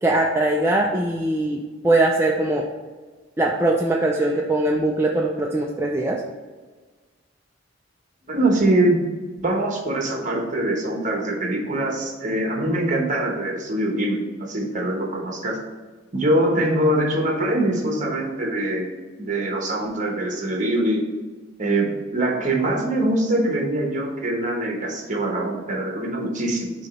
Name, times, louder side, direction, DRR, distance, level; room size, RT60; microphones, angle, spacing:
voice 1, 0.0-2.7 3.4-6.2, right 2 dB, 15° right, -1 dB, 0.4 m, -21 dB
voice 2, 8.3-9.0 9.4-15.6 16.1-18.9 19.2-21.0 21.6-26.9, right 1 dB, 40° right, 0 dB, 1.1 m, -23 dB
6.3 x 2.9 x 5.4 m, 1.4 s
head